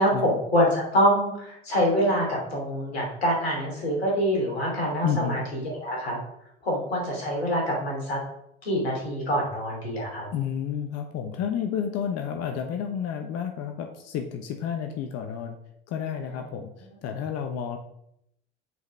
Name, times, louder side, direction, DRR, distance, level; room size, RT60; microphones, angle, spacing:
voice 1, 0.0-6.2 6.6-8.2 8.6-10.3 16.3-16.4, equal, 85° left, -1 dB, 3.2 m, -25 dB
voice 2, 5.0-5.4 10.3-15.6 15.9-17.8, left 8 dB, 55° left, 5 dB, 1.0 m, -31 dB
6.5 x 5.2 x 6.3 m, 0.75 s
hypercardioid pair, 70°, 30 cm